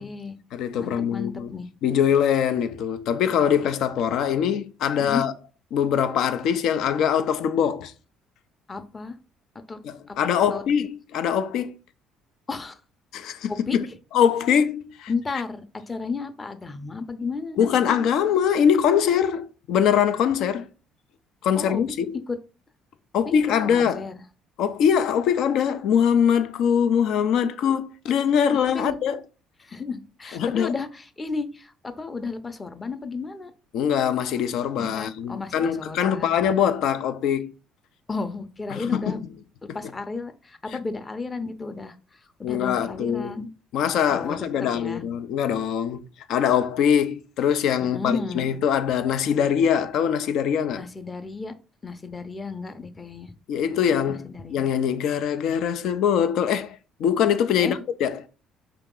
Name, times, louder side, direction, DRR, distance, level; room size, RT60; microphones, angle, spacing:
voice 1, 0.0-0.4 0.8-1.7 5.0-5.2 8.7-9.1 9.7-9.8 10.1-10.2 10.5-10.6 12.5-12.8 13.5-13.8 15.1-18.0 21.5-21.8 22.3-22.4 23.3-23.4 23.6-24.2 28.7-29.0 29.6-33.5 34.8-36.4 38.1-39.2 39.7-43.5 44.1-45.0 47.9-48.4 50.7-51.5 51.8-53.3 53.7-54.6 57.6-57.8, left 4 dB, 25° left, 0.7 m, -33 dB
voice 2, 0.5-1.5 1.8-5.3 5.7-7.9 9.8-11.8 13.1-13.9 14.1-15.1 17.6-20.7 21.4-22.2 23.1-24.1 24.6-29.2 30.3-30.7 33.7-37.5 38.7-39.2 39.7-39.8 42.4-43.4 43.7-46.0 46.3-50.8 53.5-54.2 54.5-58.3, left 8 dB, 70° left, 0.5 m, -23 dB
4.5 x 2.9 x 3.7 m
supercardioid pair, 75°, 0 cm